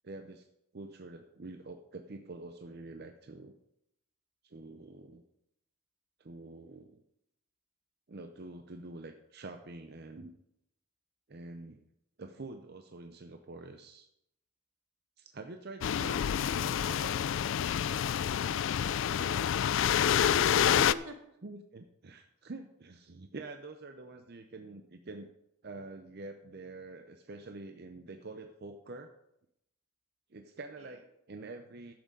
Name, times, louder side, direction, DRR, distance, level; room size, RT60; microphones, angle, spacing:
voice 1, 0.0-0.5 0.7-3.5 4.4-5.3 6.2-7.0 8.1-10.3 11.3-11.8 12.2-14.1 15.2-17.4 21.4-25.3 25.6-29.1 30.3-31.9, right 2 dB, 50° right, 6 dB, 0.6 m, -46 dB
sound 1, 15.8-20.9, left 9 dB, 60° left, 0.3 m, -28 dB
voice 2, 19.0-20.3 20.6-21.2 30.8-31.0, right 2 dB, 85° right, 3 dB, 1.8 m, -47 dB
11.0 x 7.8 x 5.2 m, 0.82 s
head